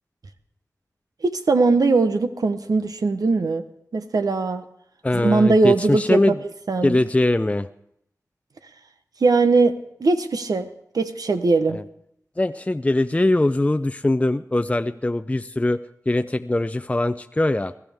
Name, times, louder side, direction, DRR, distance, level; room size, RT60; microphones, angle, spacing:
voice 1, 1.2-3.6 3.9-4.6 5.1-6.3 6.7-7.0 9.2-9.7 10.0-10.7 10.9-11.8, right 3 dB, 85° right, 8 dB, 0.9 m, -20 dB
voice 2, 5.0-6.3 6.8-7.7 11.7-11.8 12.4-15.8 16.1-17.7, left 2 dB, 20° left, 10 dB, 0.5 m, -21 dB
21.5 x 14.0 x 3.5 m, 0.74 s
cardioid pair, 50°, 6 cm